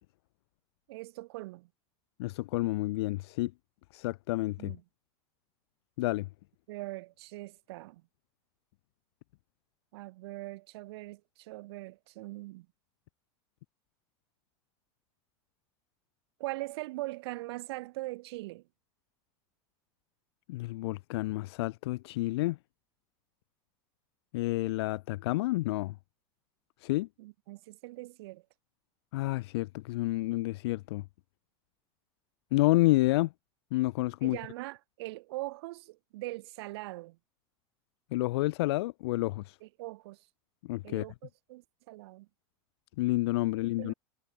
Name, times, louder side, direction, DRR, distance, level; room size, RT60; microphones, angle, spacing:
voice 1, 0.9-1.7 4.6-4.8 6.7-8.0 9.9-12.7 16.4-18.7 27.2-28.4 34.2-37.2 39.6-40.2 40.8-42.3 43.8-43.9, right 20 dB, 75° right, 2.9 m, -41 dB
voice 2, 2.2-3.5 3.9-4.7 6.0-6.3 20.5-22.6 24.3-25.9 26.8-27.1 29.1-31.0 32.5-33.3 33.7-34.4 38.1-39.6 40.7-41.0 43.0-43.9, left 19 dB, 80° left, 1.1 m, -29 dB
supercardioid pair, 155°, 13 cm